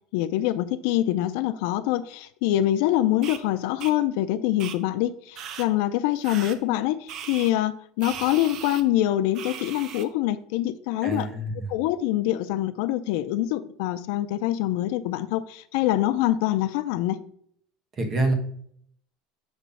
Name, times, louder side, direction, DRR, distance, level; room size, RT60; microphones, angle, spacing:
voice 1, 0.1-11.3 11.7-17.2, left 14 dB, 65° left, 0.4 m, -25 dB
sound 1, 3.2-3.4 3.8-3.9 4.6-4.8 5.4-5.7 6.2-6.6 7.1-7.5 8.0-8.8 9.4-10.1, right 8 dB, 35° right, 0.5 m, -38 dB
voice 2, 11.0-11.7 17.9-18.3, right 2 dB, 20° right, 1.1 m, -26 dB
7.1 x 3.0 x 5.5 m
cardioid pair, 175°, 0 cm